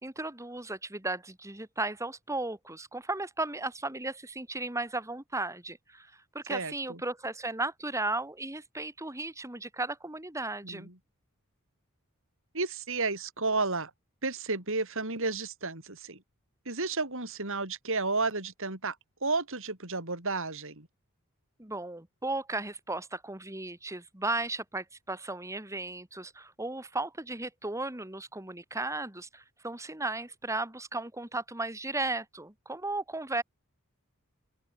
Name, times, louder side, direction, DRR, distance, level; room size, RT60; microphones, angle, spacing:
voice 1, 0.0-10.9 21.6-33.4, right 2 dB, 15° right, 2.4 m, -35 dB
voice 2, 6.5-7.0 10.6-10.9 12.5-13.9 14.2-16.2 16.7-19.0 19.2-20.9, right 3 dB, 65° right, 5.8 m, -32 dB
open air
head